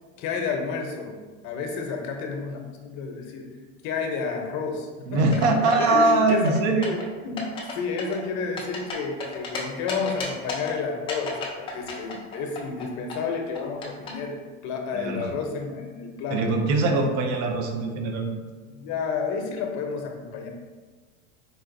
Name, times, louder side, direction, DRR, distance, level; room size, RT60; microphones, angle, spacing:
voice 1, 0.2-1.2 1.4-3.5 3.8-5.2 5.6-6.6 6.9-14.4 14.6-16.6 16.9-17.1 18.7-20.5, left 5 dB, 45° left, 2 dB, 0.7 m, -31 dB
voice 2, 5.1-7.0 14.9-15.3 16.3-18.4, right 3 dB, 45° right, 4 dB, 0.5 m, -22 dB
sound 1, 5.2-5.9 6.3-7.0 7.4-7.7 8.0-9.6 9.9-10.7 11.1-12.8 13.1-14.1, left 4 dB, 15° left, 0.3 m, -33 dB
4.1 x 2.5 x 2.5 m, 1.4 s
supercardioid pair, 125°, 39 cm